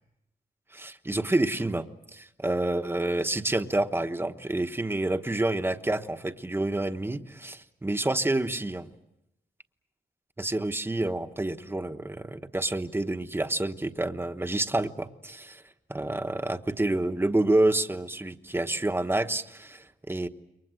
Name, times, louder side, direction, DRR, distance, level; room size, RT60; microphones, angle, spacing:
voice 1, 0.7-1.9 2.1-8.9 10.4-15.6 15.9-20.3, right 2 dB, 10° right, 8 dB, 1.1 m, -28 dB
28.5 x 23.5 x 7.7 m, 0.85 s
wide cardioid pair, 155°, 19 cm